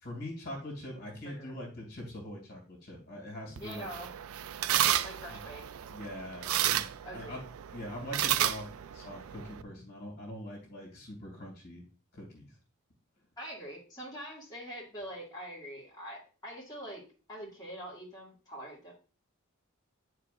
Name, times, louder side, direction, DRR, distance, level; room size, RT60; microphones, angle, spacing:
voice 1, 0.0-4.1 5.3-5.4 5.9-7.4 7.7-11.8 12.1-12.5, left 1 dB, 50° left, 0 dB, 2.3 m, -43 dB
voice 2, 1.2-1.6 3.6-4.1 5.0-5.6 7.0-7.4 13.4-17.0 17.3-18.9, equal, 20° left, -6 dB, 2.2 m, -44 dB
sound 1, 3.6-9.6, right 11 dB, 75° right, 0.4 m, -32 dB
9.6 x 4.6 x 2.5 m, 0.36 s
head